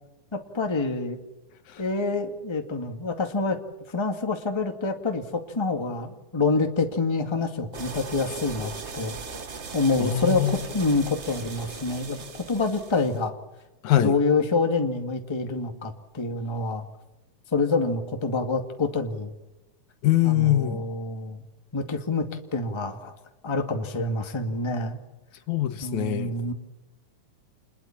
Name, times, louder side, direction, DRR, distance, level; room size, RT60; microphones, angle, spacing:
voice 1, 0.3-1.2 1.8-3.6 3.9-9.1 9.7-12.2 12.5-13.3 14.0-16.8 17.5-19.3 20.2-21.4 21.7-23.1 23.4-25.0 25.8-26.5, left 3 dB, 10° left, 1.6 m, -27 dB
sound 1, 7.7-13.2, right 4 dB, 55° right, 0.7 m, -38 dB
voice 2, 10.0-10.6 13.8-14.2 20.0-20.8 25.5-26.3, left 12 dB, 75° left, 2.5 m, -23 dB
28.5 x 21.0 x 7.4 m
omnidirectional pair, 3.5 m